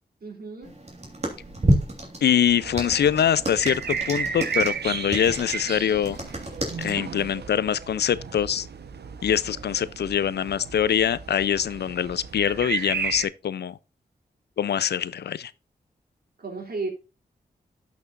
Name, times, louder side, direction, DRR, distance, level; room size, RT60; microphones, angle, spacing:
voice 1, 0.2-0.7 16.4-16.9, right 3 dB, 65° right, 2.8 m, -33 dB
sound 1, 0.6-6.9, right 1 dB, 40° right, 3.2 m, -30 dB
voice 2, 2.2-6.2 6.8-8.7 9.2-13.8 14.6-15.5, left 9 dB, 80° left, 0.5 m, -24 dB
sound 2, 2.6-13.3, right 6 dB, 80° right, 1.0 m, -34 dB
12.0 x 6.1 x 2.5 m
cardioid pair, 55°, 17 cm